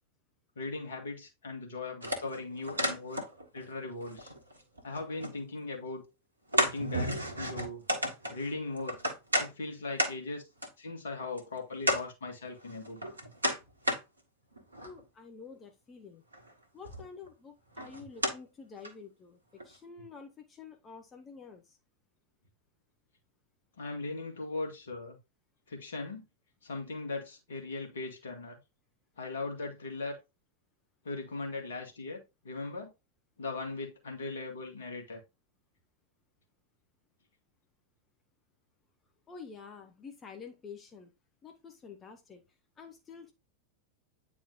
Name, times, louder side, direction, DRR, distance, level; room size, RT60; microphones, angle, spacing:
voice 1, 0.6-3.2 3.5-4.3 4.8-6.0 6.5-7.8 8.3-9.0 9.4-10.4 10.8-13.0 23.8-25.2 25.7-26.2 26.6-28.6 29.2-30.2 31.0-32.9 33.4-35.2, left 3 dB, 65° left, 1.8 m, -39 dB
sound 1, 2.0-3.6 3.9-5.4 5.8-5.9 6.5-9.5 10.0-10.1 10.6-10.7 11.4-11.5 11.8-12.0 12.6-14.0 14.5-15.0 16.3-16.5 16.8-17.3 17.8-18.3 18.8-18.9 19.6-19.7, equal, 80° right, 1.3 m, -32 dB
voice 2, 14.8-16.2 16.7-19.4 19.6-21.8 39.3-41.1 41.4-42.4 42.8-43.3, left 5 dB, 20° left, 0.9 m, -49 dB
9.2 x 4.2 x 2.6 m
figure-of-eight pair, 90°, 0 cm